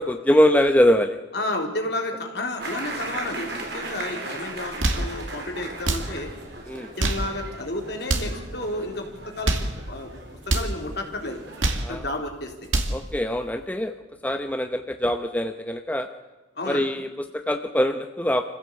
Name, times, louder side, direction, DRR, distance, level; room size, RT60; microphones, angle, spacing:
voice 1, 0.0-1.2 6.7-6.9 11.8-12.1 12.9-13.9 14.2-16.1 16.7-18.4, equal, 10° left, 6 dB, 0.8 m, -23 dB
voice 2, 1.3-6.3 7.0-9.5 9.9-10.2 10.5-11.4 11.9-12.5 16.6-16.8, left 1 dB, 55° left, 3 dB, 3.5 m, -31 dB
sound 1, 2.6-11.8, right 2 dB, 60° right, 4.4 m, -37 dB
sound 2, 4.6-5.1 5.8-6.1 6.8-7.3 8.0-8.4 9.2-9.7 10.4-10.7 11.4-11.9 12.5-13.0, right 2 dB, 80° right, 2.5 m, -25 dB
26.0 x 15.5 x 8.1 m, 1.3 s
head